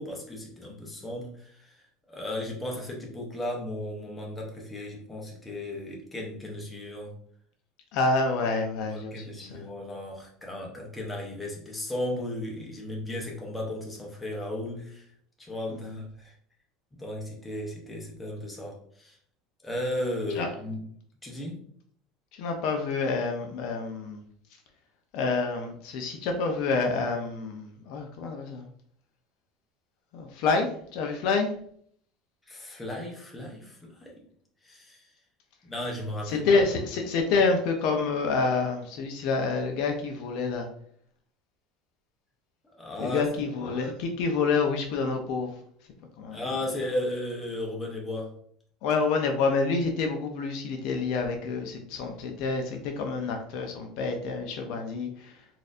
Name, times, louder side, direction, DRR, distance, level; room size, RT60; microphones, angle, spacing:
voice 1, 0.0-1.7 2.1-7.1 8.9-15.1 15.4-16.3 17.0-19.2 19.6-20.8 21.2-21.6 32.5-34.1 34.6-35.0 35.6-36.6 42.8-43.2 46.3-48.3, left 1 dB, 10° left, -2 dB, 0.7 m, -35 dB
voice 2, 7.9-9.7 15.7-16.0 20.3-20.5 22.4-24.2 25.1-28.6 30.1-31.5 36.3-40.7 43.0-45.5 46.2-46.4 48.8-55.3, left 4 dB, 55° left, 4 dB, 0.5 m, -28 dB
4.1 x 2.5 x 2.5 m, 0.62 s
cardioid pair, 175°, 0 cm